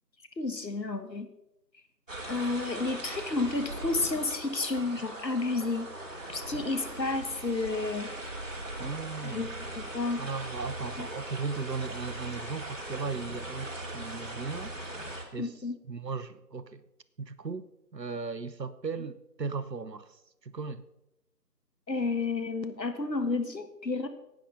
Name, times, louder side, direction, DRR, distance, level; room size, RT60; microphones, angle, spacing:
voice 1, 0.4-1.3 2.3-5.9 6.3-8.1 9.2-9.5 9.8-10.2 11.0-11.1 15.4-15.8 21.9-24.1, left 3 dB, 85° left, 1.6 m, -31 dB
sound 1, 2.1-15.2, right 1 dB, 50° right, 2.5 m, -40 dB
voice 2, 8.8-9.5 10.2-15.0 15.3-15.6 15.9-16.8 17.2-17.7 17.9-20.8, right 4 dB, 80° right, 1.0 m, -37 dB
11.0 x 9.1 x 5.4 m
figure-of-eight pair, 175°, 49 cm